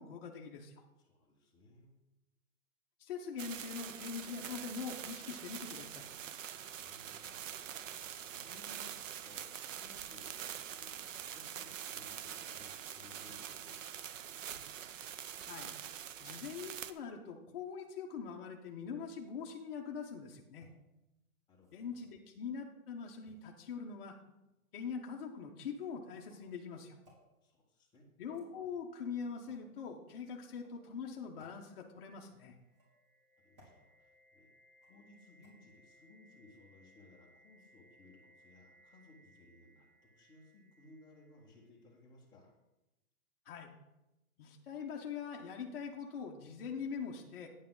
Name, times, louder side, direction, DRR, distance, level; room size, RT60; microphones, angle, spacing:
voice 1, 0.0-0.8 3.0-6.1 15.4-15.7 16.2-20.7 21.7-24.2 24.7-27.0 28.2-32.5 43.4-43.7 44.4-47.5, left 6 dB, 40° left, 0 dB, 0.9 m, -43 dB
voice 2, 1.0-1.9 6.4-14.1 21.5-22.0 27.4-28.0 33.4-34.5 34.9-42.5, left 2 dB, 10° left, -3 dB, 1.1 m, -61 dB
sound 1, 3.4-16.9, right 9 dB, 60° right, 0.6 m, -45 dB
sound 2, 20.5-20.7 21.5-22.2 23.2-24.1 25.1-25.3 26.1-26.5 27.0-27.2 28.2-28.8 29.5-29.7 30.5-30.8 31.4-31.5 32.6-33.1 33.5-33.8 34.8-35.1 35.4-35.5, left 1 dB, 30° right, 3.6 m, -66 dB
sound 3, 32.2-42.1, right 1 dB, 10° right, 3.3 m, -67 dB
9.4 x 8.5 x 3.8 m, 0.98 s
hypercardioid pair, 160°, 45 cm